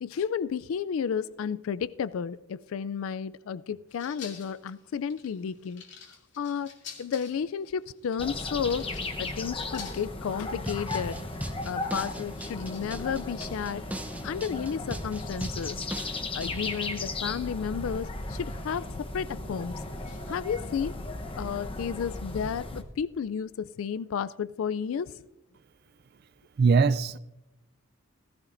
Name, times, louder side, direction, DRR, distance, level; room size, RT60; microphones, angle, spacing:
voice 1, 0.0-5.8 6.4-6.7 7.0-8.9 9.2-11.2 11.6-13.8 14.2-15.8 16.3-19.8 20.3-20.9 21.3-25.1, left 7 dB, 75° left, 0.4 m, -32 dB
sound 1, 3.9-21.0, left 7 dB, 60° left, 2.6 m, -53 dB
sound 2, 8.2-22.8, left 2 dB, 25° left, 0.9 m, -36 dB
sound 3, 10.7-16.7, right 1 dB, 5° right, 0.7 m, -38 dB
voice 2, 26.6-27.2, right 5 dB, 50° right, 0.4 m, -21 dB
17.0 x 15.5 x 2.6 m
head